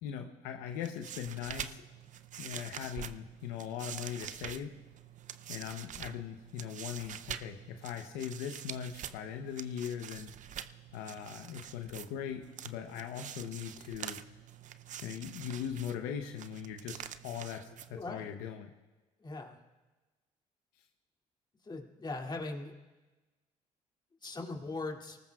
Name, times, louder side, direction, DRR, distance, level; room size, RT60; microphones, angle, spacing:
voice 1, 0.0-1.8 2.4-4.7 5.5-10.3 10.9-14.2 15.0-18.7, left 9 dB, 85° left, 4 dB, 0.9 m, -40 dB
sound 1, 0.7-18.3, right 10 dB, 55° right, 0.6 m, -46 dB
voice 2, 17.9-18.3 19.2-19.6 21.6-22.7 24.2-25.2, left 3 dB, 30° left, 1 dB, 2.6 m, -40 dB
29.0 x 19.0 x 2.4 m, 1.2 s
supercardioid pair, 65°, 15 cm